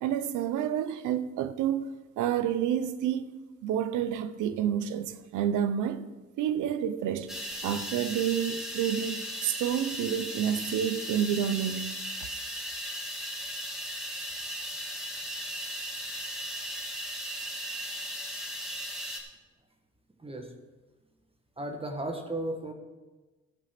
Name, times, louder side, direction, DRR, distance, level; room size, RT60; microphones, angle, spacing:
voice 1, 0.0-1.9 2.2-3.3 3.6-6.0 6.4-7.3 7.6-12.0, right 9 dB, 85° right, 0.7 m, -29 dB
sound 1, 7.3-19.2, equal, ahead, 2.2 m, -37 dB
voice 2, 20.2-20.5 21.6-22.7, right 1 dB, 20° right, 1.4 m, -35 dB
15.0 x 5.1 x 5.8 m
cardioid pair, 90°, 30 cm